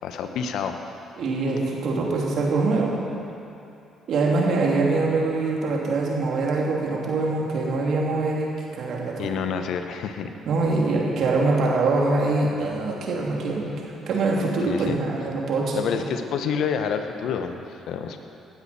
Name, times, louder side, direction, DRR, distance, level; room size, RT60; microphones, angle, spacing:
voice 1, 0.0-0.8 9.2-10.3 14.7-15.0 15.7-18.2, left 7 dB, 70° left, 7 dB, 1.1 m, -28 dB
voice 2, 1.2-3.0 4.1-9.3 10.5-16.1, right 3 dB, 65° right, -2 dB, 3.0 m, -24 dB
18.0 x 12.5 x 4.4 m, 2.8 s
hypercardioid pair, 50°, 0 cm